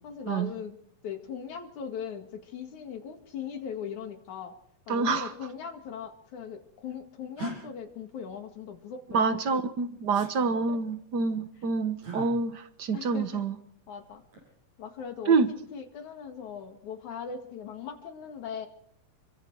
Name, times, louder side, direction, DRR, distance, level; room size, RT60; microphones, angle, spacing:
voice 1, 0.0-0.8 1.0-4.6 4.9-9.6 10.7-10.8 12.9-13.4 13.9-14.2 14.8-15.3 15.7-18.7, left 7 dB, 80° left, 3.4 m, -39 dB
voice 2, 4.9-5.3 9.1-13.5 15.3-15.5, right 4 dB, 50° right, 1.4 m, -27 dB
sound 1, 7.4-7.6 10.1-10.3 12.0-12.3 14.0-14.5, equal, 80° right, 7.9 m, -37 dB
28.5 x 23.5 x 4.7 m
omnidirectional pair, 3.3 m